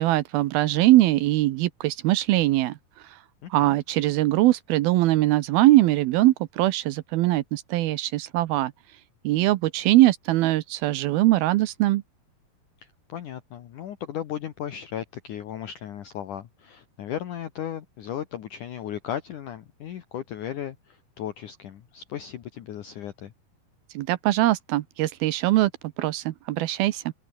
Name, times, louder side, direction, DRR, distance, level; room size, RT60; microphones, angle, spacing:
voice 1, 0.0-2.8 3.1-3.2 3.5-8.7 9.2-12.0 23.9-25.7 26.0-27.1, right 16 dB, 75° right, 2.6 m, -21 dB
voice 2, 3.4-3.7 12.8-23.3, left 10 dB, 60° left, 2.7 m, -36 dB
open air
omnidirectional pair, 4.6 m